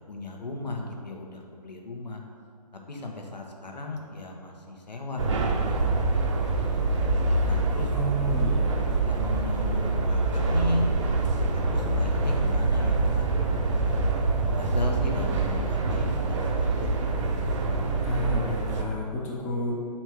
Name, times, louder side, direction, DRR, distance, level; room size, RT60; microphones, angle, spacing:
voice 1, 0.0-2.2 2.9-5.5 5.8-6.2 6.6-6.7 7.5-7.9 9.1-13.9 14.5-16.1 16.6-17.0, left 2 dB, 85° left, 1 dB, 1.2 m, -35 dB
sound 1, 5.2-18.8, right 3 dB, 45° right, 0.8 m, -25 dB
voice 2, 7.9-8.8 18.0-19.7, left 1 dB, 10° left, -4 dB, 0.6 m, -30 dB
6.1 x 4.4 x 4.6 m, 2.3 s
figure-of-eight pair, 140°, 21 cm